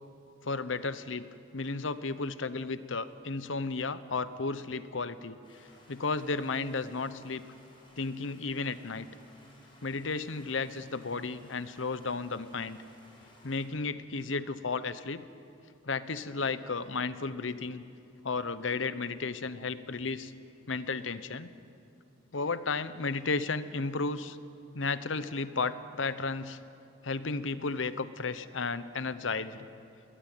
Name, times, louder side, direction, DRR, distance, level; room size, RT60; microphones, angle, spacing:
voice 1, 0.4-1.2 1.5-7.4 8.0-9.1 9.8-12.8 13.4-15.2 15.8-17.8 18.2-20.3 20.7-21.5 22.3-24.4 24.7-26.6 27.0-29.7, left 4 dB, 70° left, 14 dB, 0.9 m, -33 dB
Stream, 5.4-13.7, left 1 dB, 25° left, 6.7 m, -60 dB
21.5 x 19.0 x 9.1 m, 2.6 s
head